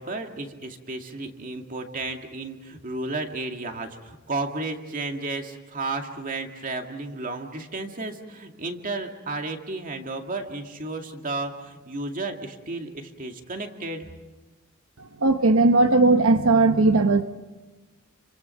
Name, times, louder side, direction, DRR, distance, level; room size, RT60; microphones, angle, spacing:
voice 1, 0.0-14.1, right 2 dB, 40° right, 4 dB, 2.4 m, -33 dB
voice 2, 15.0-17.2, right 3 dB, 75° right, 8 dB, 0.9 m, -18 dB
29.5 x 25.0 x 5.8 m, 1.2 s
head